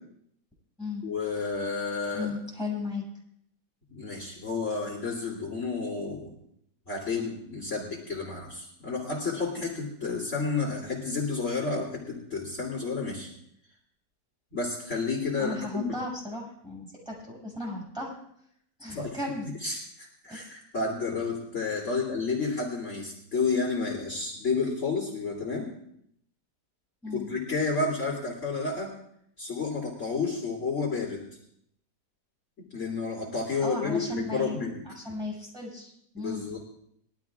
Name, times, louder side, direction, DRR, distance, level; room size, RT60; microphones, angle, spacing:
voice 1, 1.0-2.3 3.9-6.4 6.9-13.3 14.5-16.0 18.9-19.2 19.6-25.7 27.1-28.9 29.4-31.2 32.7-34.8 36.2-36.6, left 4 dB, 45° left, -4 dB, 3.1 m, -31 dB
voice 2, 2.1-3.0 15.4-18.1 18.8-19.5 20.3-20.4 21.8-22.0 27.0-27.3 33.6-34.6 34.9-36.4, left 2 dB, ahead, -4 dB, 6.2 m, -36 dB
22.0 x 13.0 x 2.4 m, 0.72 s
omnidirectional pair, 1.8 m